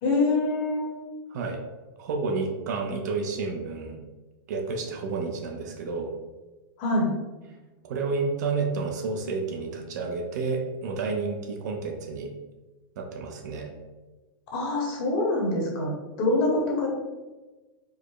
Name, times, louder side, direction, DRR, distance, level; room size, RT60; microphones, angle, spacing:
voice 1, 0.0-1.1 6.8-7.1 14.5-16.9, left 2 dB, 35° left, -2 dB, 1.1 m, -25 dB
voice 2, 2.0-3.9 4.5-6.1 7.8-12.3 13.0-13.7, right 4 dB, 50° right, 2 dB, 0.6 m, -30 dB
4.7 x 2.1 x 4.6 m, 1.2 s
supercardioid pair, 170°, 12 cm